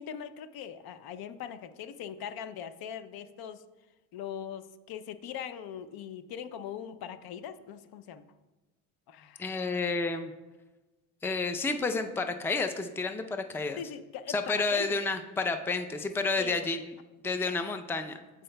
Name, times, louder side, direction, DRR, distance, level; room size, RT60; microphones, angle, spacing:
voice 1, 0.0-3.6 4.1-8.2 9.1-9.7 13.8-15.0 16.4-16.6, left 8 dB, 60° left, 12 dB, 0.7 m, -41 dB
voice 2, 9.4-10.3 11.2-13.8 14.3-16.9 17.2-18.2, left 3 dB, 5° left, 7 dB, 0.5 m, -30 dB
14.0 x 4.9 x 2.2 m, 1.1 s
hypercardioid pair, 60°, 42 cm